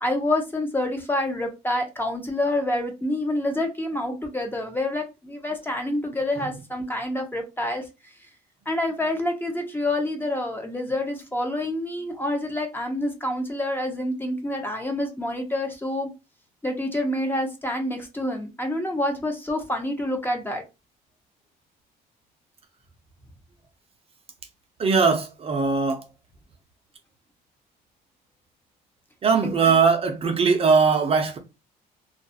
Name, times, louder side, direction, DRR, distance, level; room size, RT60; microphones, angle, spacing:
voice 1, 0.0-7.8 8.7-16.1 16.6-20.6 29.4-29.7, left 1 dB, 10° left, 0.6 m, -27 dB
voice 2, 24.8-26.0 29.2-31.4, right 5 dB, 35° right, 0.5 m, -20 dB
2.3 x 2.3 x 2.7 m
cardioid pair, 110°, 17 cm